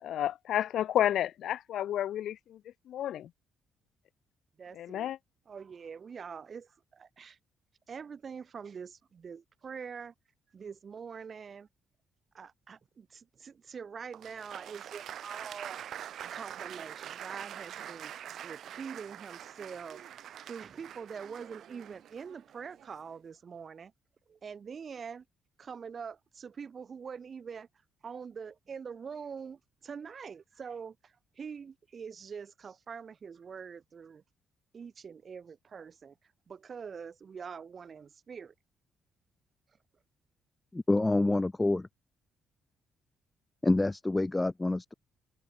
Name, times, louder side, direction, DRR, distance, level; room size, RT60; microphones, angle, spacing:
voice 1, 0.0-2.6 2.9-3.3 4.7-5.2, left 11 dB, 75° left, 1.5 m, -31 dB
voice 2, 4.6-5.1 5.5-7.4 7.9-10.1 10.5-11.7 12.3-15.8 16.3-18.1 18.4-20.1 20.5-23.9 24.3-25.3 25.6-27.7 28.0-34.2 34.7-36.2 36.5-38.5, right 6 dB, 45° right, 2.0 m, -44 dB
Applause, 14.1-23.1, right 10 dB, 70° right, 1.4 m, -45 dB
voice 3, 40.7-41.9 43.6-44.9, left 2 dB, 15° left, 0.3 m, -27 dB
cardioid pair, 90°, 0 cm